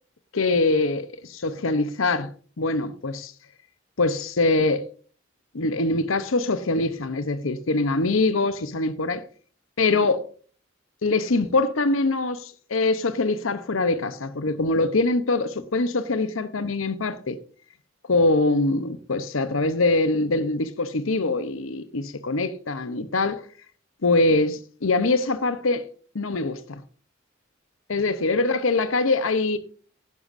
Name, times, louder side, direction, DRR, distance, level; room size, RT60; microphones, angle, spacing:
voice 1, 0.3-2.3 2.6-3.3 4.0-4.8 5.5-9.2 9.8-10.2 11.0-17.4 18.1-23.4 24.0-25.8 26.1-26.8 27.9-29.6, left 2 dB, 85° left, 0.9 m, -23 dB
11.0 x 10.5 x 2.6 m
head